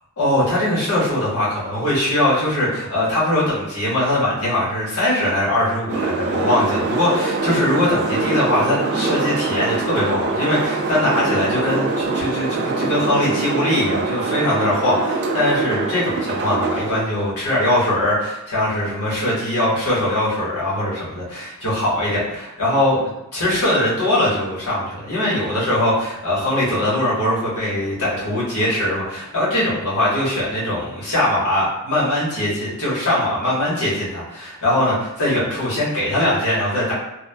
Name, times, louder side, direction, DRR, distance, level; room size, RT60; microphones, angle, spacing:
voice 1, 0.2-36.9, left 1 dB, 80° left, -8 dB, 1.3 m, -21 dB
sound 1, 5.9-17.0, right 3 dB, 50° right, 0.3 m, -24 dB
3.0 x 2.3 x 2.2 m, 0.92 s
head